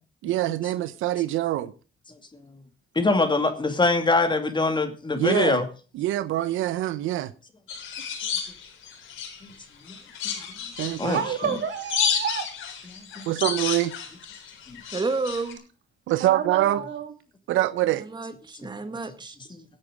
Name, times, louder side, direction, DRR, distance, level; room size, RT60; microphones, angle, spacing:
voice 1, 0.2-1.7 5.1-5.6 5.9-7.3 10.8-11.2 13.3-13.9 16.1-16.8 17.5-18.1, right 14 dB, 85° right, 0.7 m, -24 dB
voice 2, 2.1-2.5 2.9-5.6 9.4-9.5 9.9-10.0 10.2-10.5 11.0-11.2 12.9-13.3 14.7-14.8 18.5-18.7 19.5-19.6, left 3 dB, 25° left, 2.5 m, -24 dB
sound 1, 7.7-9.5 9.8-15.5, left 7 dB, 85° left, 4.2 m, -31 dB
voice 3, 10.8-12.5 14.8-14.9 16.2-17.1, right 7 dB, 65° right, 3.0 m, -30 dB
voice 4, 14.9-15.6 18.0-19.6, right 3 dB, 20° right, 1.5 m, -31 dB
16.5 x 8.9 x 5.1 m
cardioid pair, 90°, 20 cm